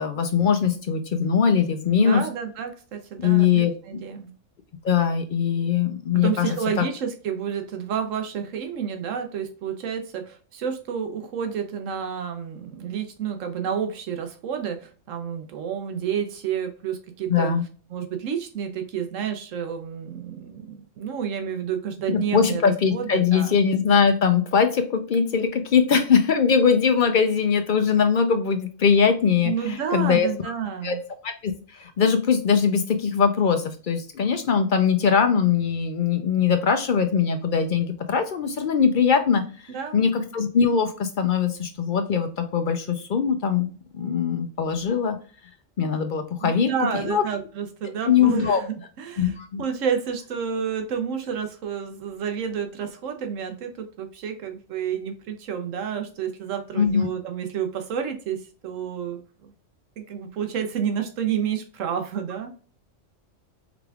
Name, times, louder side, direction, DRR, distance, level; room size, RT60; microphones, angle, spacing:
voice 1, 0.0-2.2 3.2-3.7 4.8-6.8 17.3-17.6 22.1-30.3 30.8-31.0 31.2-39.4 39.9-43.7 43.9-45.2 45.8-46.7 47.1-47.2 48.1-48.6 49.2-49.6 56.8-57.1, left 6 dB, 60° left, 7 dB, 0.5 m, -21 dB
voice 2, 2.0-4.3 6.1-17.5 17.9-23.6 29.4-31.0 39.7-40.2 46.4-59.5 60.0-62.5, right 7 dB, 80° right, 6 dB, 1.1 m, -30 dB
4.9 x 3.4 x 2.3 m, 0.40 s
omnidirectional pair, 1.3 m